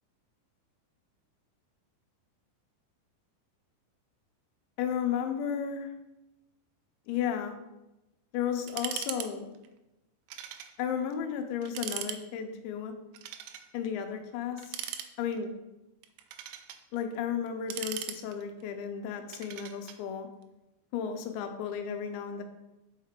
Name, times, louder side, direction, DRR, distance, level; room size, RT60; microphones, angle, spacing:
voice 1, 4.8-5.9 7.1-7.6 8.3-9.5 10.8-12.9 13.7-14.8 15.2-15.5 16.9-20.3 20.9-22.4, left 8 dB, 85° left, 6 dB, 3.0 m, -33 dB
sound 1, 8.7-9.3 9.6-9.7 10.3-10.7 11.1-11.2 11.6-12.2 13.1-13.7 14.6-15.5 16.0-16.8 17.5-18.6 19.3-20.0, right 10 dB, 90° right, 2.9 m, -39 dB
5.6 x 5.5 x 3.6 m, 0.96 s
omnidirectional pair, 5.1 m